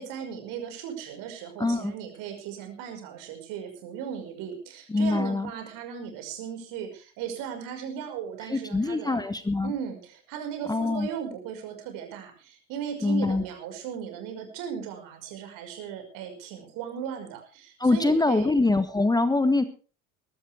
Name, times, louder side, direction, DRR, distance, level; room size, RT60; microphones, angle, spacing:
voice 1, 0.0-9.2 9.6-18.5, right 8 dB, 55° right, 4 dB, 5.8 m, -37 dB
voice 2, 1.6-1.9 4.9-5.5 8.5-9.7 10.7-11.1 13.0-13.4 17.8-19.6, left 2 dB, 10° left, 13 dB, 1.2 m, -24 dB
21.5 x 13.0 x 3.6 m, 0.36 s
figure-of-eight pair, 65°, 39 cm